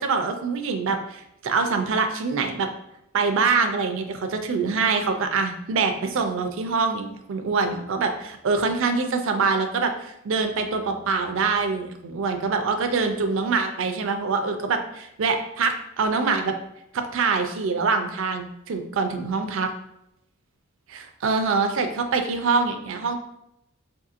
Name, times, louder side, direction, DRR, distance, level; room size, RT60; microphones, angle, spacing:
voice 1, 0.0-2.7 3.1-16.5 16.9-19.7 20.9-23.2, right 4 dB, 65° right, 6 dB, 0.4 m, -24 dB
4.6 x 2.7 x 2.5 m, 0.82 s
head